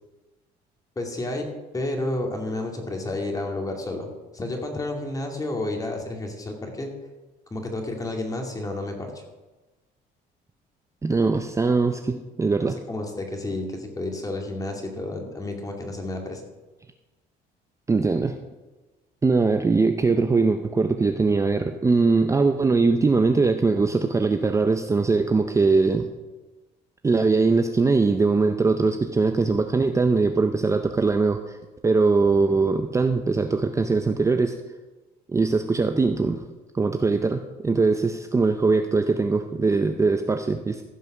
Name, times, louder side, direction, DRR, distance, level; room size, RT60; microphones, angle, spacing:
voice 1, 1.0-1.5 1.7-6.9 7.5-9.1 12.6-16.4, left 2 dB, 20° left, 2 dB, 2.3 m, -31 dB
voice 2, 11.0-12.8 17.9-18.4 19.2-26.1 27.0-31.6 31.8-34.6 35.3-36.4 36.7-40.8, right 4 dB, 15° right, 7 dB, 0.6 m, -21 dB
15.0 x 5.5 x 6.1 m, 1.2 s
cardioid pair, 110°, 17 cm